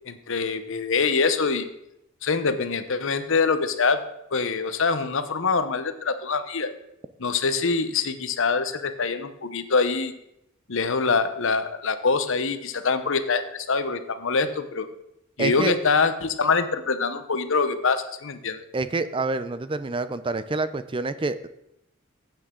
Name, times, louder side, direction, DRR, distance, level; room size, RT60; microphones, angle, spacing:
voice 1, 0.1-1.7 2.2-4.0 4.3-6.7 7.2-10.1 10.7-14.9 15.4-18.6, left 4 dB, 65° left, 10 dB, 0.9 m, -24 dB
voice 2, 15.4-15.7 18.7-21.5, right 3 dB, 25° right, 13 dB, 0.5 m, -27 dB
15.0 x 8.8 x 3.8 m, 0.82 s
head